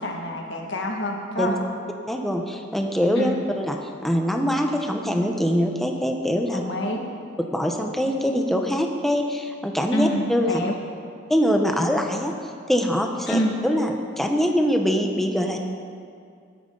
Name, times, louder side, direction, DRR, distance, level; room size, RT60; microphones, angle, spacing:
voice 1, 0.0-1.5 3.2-3.4 6.5-7.0 8.3-8.4 9.9-10.7 13.3-13.5, left 1 dB, 60° left, 0 dB, 2.0 m, -27 dB
voice 2, 2.1-6.6 7.5-10.6 11.3-12.3 12.7-15.6, equal, ahead, 2 dB, 1.0 m, -23 dB
16.5 x 13.0 x 4.0 m, 2.3 s
head